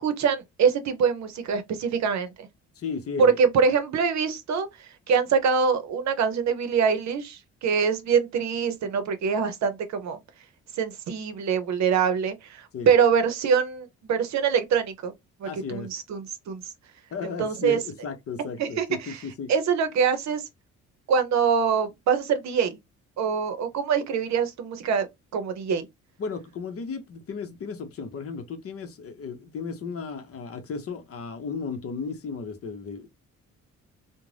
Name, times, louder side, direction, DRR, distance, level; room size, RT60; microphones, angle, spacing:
voice 1, 0.0-2.5 3.2-4.7 5.1-10.2 10.8-15.1 15.4-16.6 17.2-17.8 18.6-19.2 19.5-20.4 21.1-22.8 23.2-25.1 25.3-25.9, right 6 dB, 65° right, 0.7 m, -24 dB
voice 2, 2.8-3.4 12.7-12.9 15.4-15.9 17.1-19.5 26.2-33.1, left 5 dB, 50° left, 0.7 m, -35 dB
2.5 x 2.1 x 3.2 m
cardioid pair, 90°, 30 cm